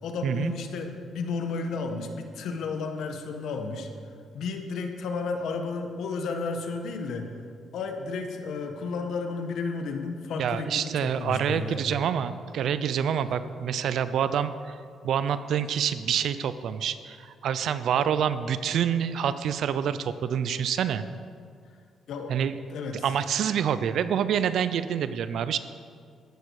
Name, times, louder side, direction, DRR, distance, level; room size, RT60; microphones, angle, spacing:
voice 1, 0.0-3.9 4.3-7.3 7.7-11.8 22.1-22.3 22.7-23.0, left 4 dB, 75° left, 5 dB, 1.4 m, -32 dB
voice 2, 10.4-14.8 15.0-21.0 22.3-22.5 23.0-25.6, right 8 dB, 70° right, 13 dB, 0.6 m, -27 dB
13.5 x 11.0 x 4.9 m, 2.2 s
cardioid pair, 90°, 0 cm